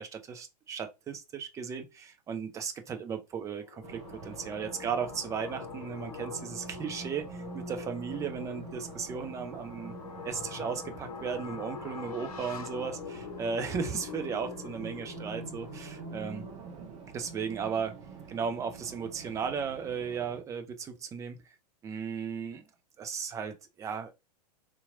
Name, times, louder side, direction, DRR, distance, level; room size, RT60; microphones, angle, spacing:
voice 1, 0.0-10.0 10.2-16.5 17.1-18.0 18.3-21.4 21.8-22.7 23.0-24.2, right 6 dB, 15° right, 0.5 m, -36 dB
sound 1, 3.5-16.6, left 7 dB, 60° left, 0.8 m, -44 dB
Race car auto racing, 3.8-20.4, right 4 dB, 30° right, 0.9 m, -46 dB
3.7 x 2.9 x 2.5 m
figure-of-eight pair, 100°, 21 cm